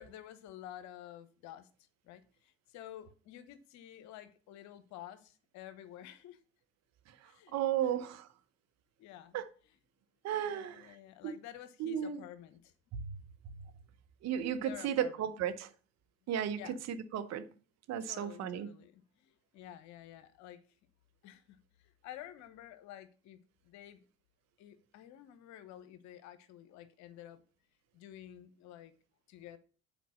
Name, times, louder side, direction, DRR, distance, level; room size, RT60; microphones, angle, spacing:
voice 1, 0.0-1.7 2.0-6.4 7.2-7.6 9.0-9.4 10.5-12.7 14.6-15.1 16.5-16.8 18.0-20.6 21.2-23.4 23.6-24.0 24.6-27.4 27.9-28.9 29.3-29.6, left 12 dB, 65° left, 1.0 m, -51 dB
voice 2, 7.1-8.3 9.3-9.5 10.2-11.0 11.2-11.3 11.8-12.2 12.9-13.2 13.5-13.6 14.2-15.7 16.3-17.5 17.9-18.7, right 9 dB, 55° right, 1.0 m, -35 dB
8.2 x 4.4 x 6.4 m
hypercardioid pair, 60°, 31 cm